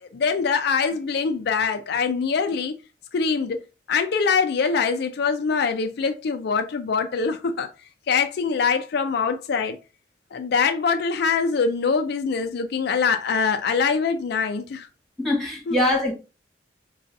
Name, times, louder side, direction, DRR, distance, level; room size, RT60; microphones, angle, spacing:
voice 1, 0.1-2.7 3.1-3.6 3.9-7.7 8.1-9.8 10.3-14.9 15.7-15.8, left 5 dB, 65° left, 0.4 m, -23 dB
voice 2, 15.2-16.1, left 1 dB, ahead, 1.4 m, -22 dB
5.1 x 2.3 x 2.6 m
head